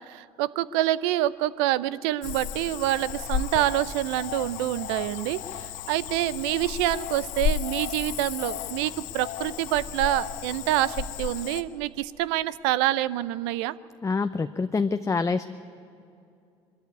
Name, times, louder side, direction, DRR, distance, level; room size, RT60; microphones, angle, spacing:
voice 1, 0.1-13.7, right 15 dB, 75° right, 17 dB, 0.6 m, -27 dB
Cricket / Frog, 2.2-11.6, left 9 dB, 65° left, 1.1 m, -33 dB
voice 2, 14.0-15.5, left 4 dB, 20° left, 9 dB, 0.7 m, -26 dB
22.5 x 13.0 x 9.6 m, 2.5 s
hypercardioid pair, 65°, 14 cm